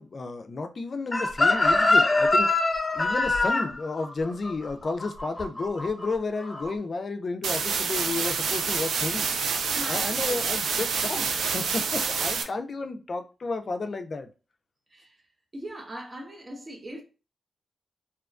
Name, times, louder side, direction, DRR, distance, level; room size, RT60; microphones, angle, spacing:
voice 1, 0.0-2.5 2.9-9.3 9.9-14.3, left 3 dB, 50° left, 0.4 m, -32 dB
Chicken rooster, 1.1-6.1 6.4-6.7, left 2 dB, 30° left, 1.0 m, -23 dB
sound 1, 7.4-12.4, right 5 dB, 85° right, 0.4 m, -27 dB
voice 2, 9.7-10.6 11.0-11.1 14.9-15.1 15.5-17.0, right 1 dB, 35° right, 1.0 m, -40 dB
2.8 x 2.2 x 2.4 m
cardioid pair, 60°, 0 cm